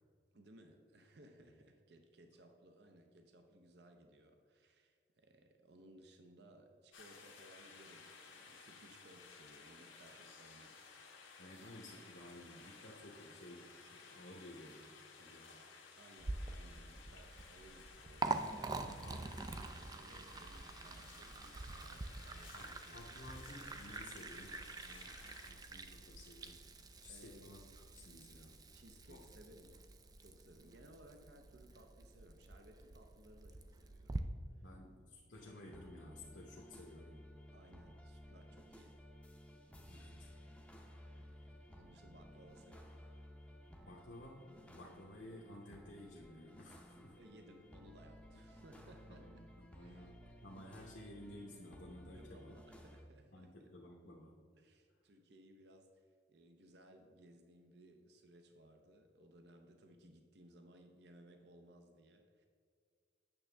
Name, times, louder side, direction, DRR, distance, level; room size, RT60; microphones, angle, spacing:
voice 1, 0.3-10.8 16.0-23.2 27.0-27.4 28.7-29.8 30.2-34.7 37.5-39.0 40.9-43.1 43.7-43.9 46.9-49.4 49.8-50.1 52.1-53.7 54.6-62.5, right 1 dB, 55° right, 5 dB, 0.6 m, -62 dB
sound 1, 6.9-25.5, left 5 dB, 85° left, 1.3 m, -58 dB
voice 2, 11.4-14.8 15.2-15.6 19.0-19.2 22.5-25.2 25.4-26.6 27.0-28.5 29.1-29.2 34.6-37.2 39.8-40.3 43.8-47.2 49.1-52.6 53.3-54.4, left 1 dB, 65° left, -3 dB, 1.0 m, -55 dB
Liquid, 16.2-34.2, right 3 dB, 20° right, 0.3 m, -46 dB
sound 2, 35.3-53.0, equal, 5° left, 0.7 m, -57 dB
8.9 x 6.6 x 3.4 m, 2.1 s
head